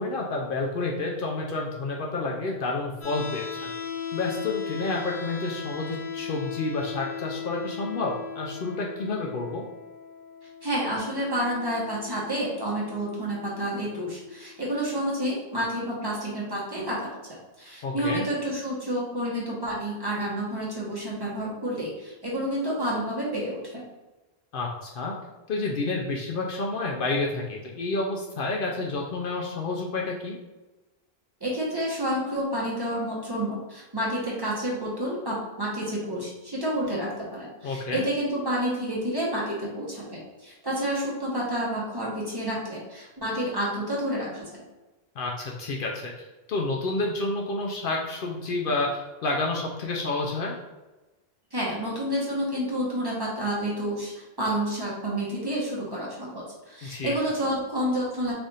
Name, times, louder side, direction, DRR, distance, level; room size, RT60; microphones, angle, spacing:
voice 1, 0.0-3.7 4.1-9.6 17.8-18.2 24.5-25.1 25.5-30.4 37.6-38.0 45.2-50.5 56.8-57.2, left 3 dB, 65° left, -1 dB, 0.7 m, -29 dB
sound 1, 3.0-15.0, left 6 dB, 85° left, 1.4 m, -38 dB
voice 2, 10.6-23.8 31.4-44.6 51.5-54.1 54.4-58.3, right 1 dB, 25° right, -6 dB, 0.9 m, -29 dB
3.4 x 2.4 x 4.0 m, 1.1 s
omnidirectional pair, 1.1 m